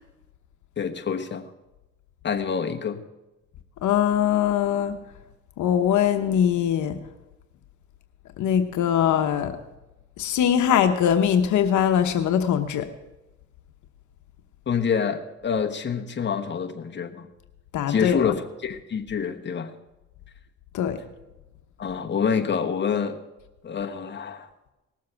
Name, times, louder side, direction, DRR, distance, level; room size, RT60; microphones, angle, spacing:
voice 1, 0.8-1.5 2.2-3.0 14.7-17.3 17.9-19.7 21.8-23.2 23.6-24.5, left 6 dB, 35° left, 5 dB, 1.2 m, -27 dB
voice 2, 3.8-4.9 5.6-7.0 8.4-9.5 10.2-12.9 17.7-18.3 20.7-21.0, left 9 dB, 75° left, 7 dB, 1.0 m, -22 dB
18.5 x 7.4 x 5.8 m, 1.0 s
cardioid pair, 90°, 30 cm